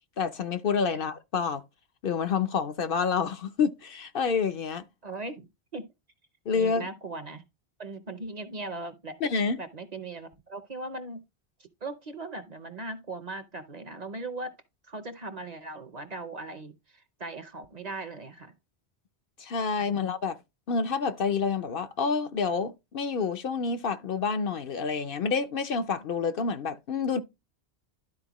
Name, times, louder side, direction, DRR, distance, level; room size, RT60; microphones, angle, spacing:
voice 1, 0.2-1.6 2.0-4.8 6.5-6.9 9.2-9.6 19.4-20.4 20.7-27.2, left 5 dB, 60° left, 0.8 m, -28 dB
voice 2, 5.0-5.5 5.7-5.9 6.5-7.5 7.8-11.2 11.6-14.5 14.9-18.5 19.8-20.0, right 2 dB, 45° right, 0.8 m, -39 dB
12.5 x 4.3 x 3.0 m
omnidirectional pair, 1.1 m